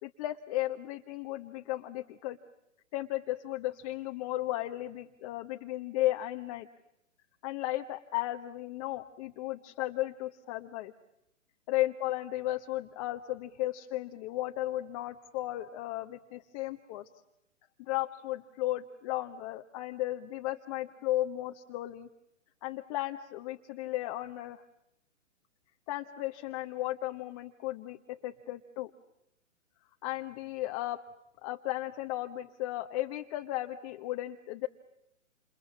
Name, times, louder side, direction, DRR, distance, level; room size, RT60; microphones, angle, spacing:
voice 1, 0.0-2.4 2.9-6.7 7.4-10.9 11.7-17.1 17.8-22.1 22.6-24.6 25.9-28.9 30.0-31.0 31.4-34.7, left 15 dB, 30° left, 5 dB, 1.0 m, -35 dB
28.5 x 28.5 x 7.1 m, 0.85 s
hypercardioid pair, 135°, 38 cm